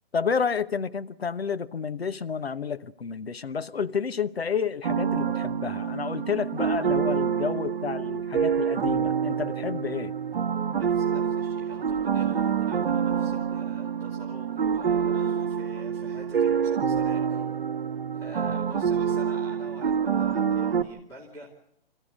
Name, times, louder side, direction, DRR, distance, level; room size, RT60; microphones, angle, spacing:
voice 1, 0.1-10.1 18.5-18.6, left 6 dB, 85° left, 1.0 m, -30 dB
sound 1, 4.8-20.8, right 7 dB, 65° right, 1.2 m, -27 dB
voice 2, 10.7-17.4 18.1-21.5, right 1 dB, 10° left, 2.7 m, -47 dB
25.5 x 15.0 x 8.4 m
figure-of-eight pair, 140°, 30 cm